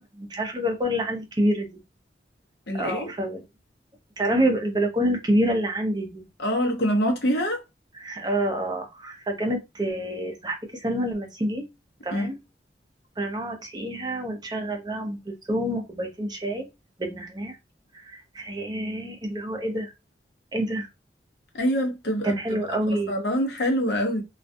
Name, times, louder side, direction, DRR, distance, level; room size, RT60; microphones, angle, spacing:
voice 1, 0.2-1.7 2.7-3.4 4.2-6.2 7.9-11.6 12.0-12.4 13.2-16.7 17.0-17.6 18.0-19.9 20.5-20.9 22.2-23.1, right 1 dB, 25° right, 0.5 m, -27 dB
voice 2, 2.7-3.1 6.4-7.6 12.1-12.3 21.5-22.6 23.1-24.2, equal, 65° left, 0.8 m, -25 dB
2.3 x 2.2 x 2.6 m
head